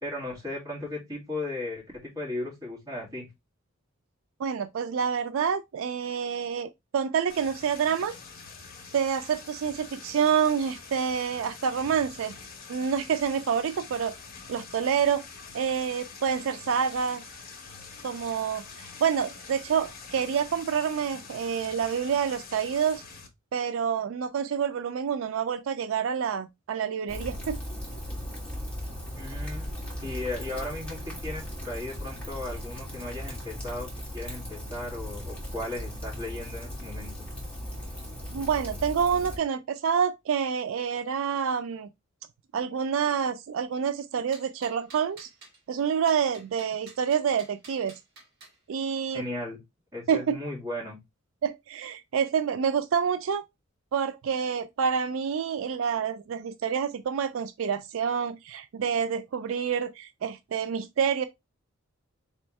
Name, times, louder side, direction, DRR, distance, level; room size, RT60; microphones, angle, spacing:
voice 1, 0.0-3.3 29.1-29.7 30.0-33.9 34.1-37.3 49.1-49.6 49.9-51.0, left 2 dB, 15° right, 2.1 m, -36 dB
voice 2, 4.4-8.1 8.9-12.4 12.7-14.2 14.5-15.2 15.5-17.2 18.0-23.0 23.5-27.6 38.3-41.9 42.5-45.3 45.7-47.9 48.7-49.2 50.1-50.3 51.4-53.4 53.9-61.3, right 7 dB, 70° right, 0.3 m, -28 dB
sound 1, 7.3-23.3, left 5 dB, 45° left, 0.9 m, -45 dB
Rain, 27.1-39.4, equal, 5° left, 1.8 m, -37 dB
sound 2, 44.3-45.6 46.1-48.6, right 3 dB, 50° right, 1.8 m, -51 dB
4.3 x 3.5 x 3.1 m
head